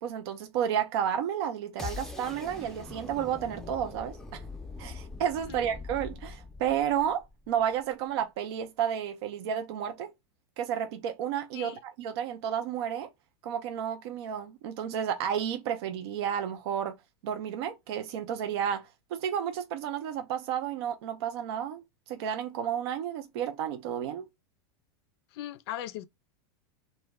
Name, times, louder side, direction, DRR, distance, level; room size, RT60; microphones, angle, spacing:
voice 1, 0.0-4.4 4.8-10.1 10.6-13.1 13.4-16.9 17.2-21.8 22.1-24.3, right 9 dB, 70° right, 0.4 m, -32 dB
sound 1, 1.8-7.8, left 3 dB, 5° left, 0.5 m, -42 dB
voice 2, 25.3-26.0, left 12 dB, 70° left, 0.4 m, -38 dB
2.2 x 2.1 x 3.3 m
supercardioid pair, 125°, 14 cm